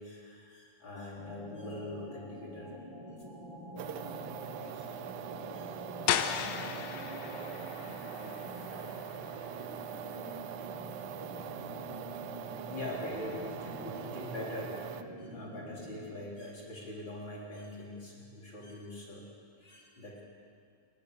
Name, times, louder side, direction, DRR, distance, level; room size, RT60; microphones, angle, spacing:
voice 1, 0.0-2.7 3.9-4.1 4.6-5.0 5.5-5.9 12.6-14.8 15.2-19.3 19.6-20.2, left 1 dB, 35° left, -3 dB, 4.3 m, -43 dB
sound 1, 1.1-16.3, equal, 10° right, 2.0 m, -46 dB
sound 2, 3.8-15.0, right 10 dB, 75° right, 2.1 m, -43 dB
voice 2, 5.4-9.9 13.2-13.3, left 1 dB, 40° right, -2 dB, 4.3 m, -54 dB
sound 3, 6.1-11.7, left 10 dB, 85° left, 2.6 m, -37 dB
29.5 x 20.5 x 6.9 m, 2.2 s
omnidirectional pair, 3.9 m